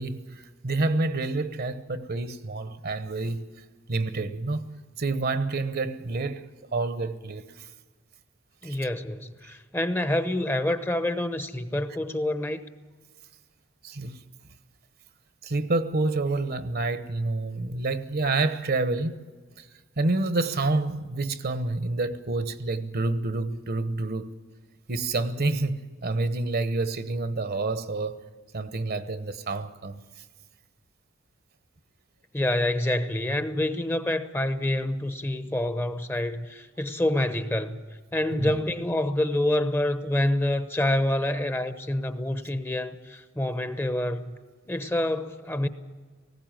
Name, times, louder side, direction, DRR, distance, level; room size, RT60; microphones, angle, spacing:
voice 1, 0.0-3.4 3.9-7.7 8.6-8.8 13.8-14.2 15.4-19.2 19.6-19.7 20.0-24.3 24.9-28.2 28.5-30.0 38.3-38.6, right 2 dB, 50° right, 1.0 m, -28 dB
voice 2, 8.6-12.6 32.3-37.8 38.1-44.3 44.7-45.7, left 1 dB, 10° left, 0.8 m, -27 dB
19.0 x 16.0 x 9.1 m
head